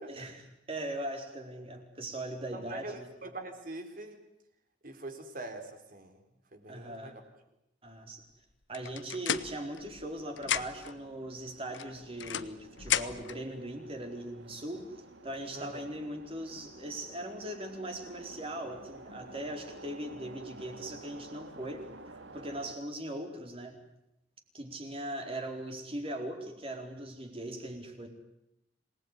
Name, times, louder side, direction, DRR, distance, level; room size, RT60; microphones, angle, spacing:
voice 1, 0.1-3.1 6.7-7.2 7.8-8.2 8.7-15.0 15.2-21.9 22.3-23.8 24.5-28.1, right 1 dB, 30° right, 4 dB, 4.3 m, -40 dB
voice 2, 2.5-4.3 4.8-6.2 6.5-7.2 15.5-15.8, right 2 dB, 50° right, 7 dB, 4.0 m, -43 dB
sound 1, 8.7-10.1 10.4-11.0 11.7-13.4, left 9 dB, 85° left, 1.1 m, -34 dB
sound 2, 9.8-22.8, right 2 dB, 80° right, 2.2 m, -51 dB
27.0 x 19.5 x 9.9 m, 0.83 s
head